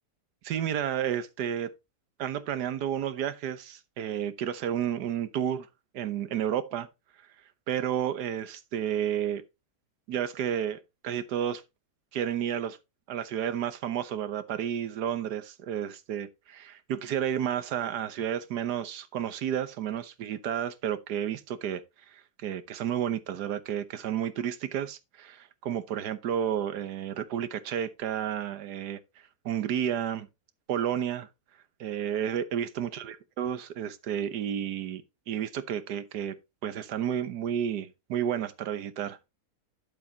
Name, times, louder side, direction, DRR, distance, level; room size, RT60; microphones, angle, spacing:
voice 1, 0.4-1.7 2.2-5.7 5.9-6.9 7.7-9.4 10.1-11.6 12.1-12.8 13.1-21.8 22.1-29.0 29.4-30.3 30.7-31.3 31.8-36.3 36.6-39.3, right 9 dB, 85° right, 1.5 m, -31 dB
9.5 x 7.6 x 2.8 m
omnidirectional pair, 1.7 m